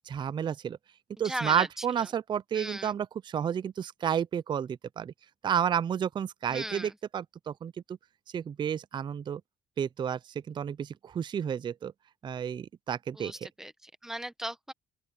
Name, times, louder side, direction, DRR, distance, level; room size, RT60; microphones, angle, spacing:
voice 1, 0.1-0.8 1.2-5.1 5.4-8.0 8.3-9.4 9.8-10.2 10.5-11.9 12.2-13.5, right 8 dB, 30° right, 0.3 m, -31 dB
voice 2, 1.2-1.8 2.5-2.9 6.5-6.9 13.1-14.7, right 1 dB, 5° right, 1.2 m, -37 dB
open air
cardioid pair, 110°, 17 cm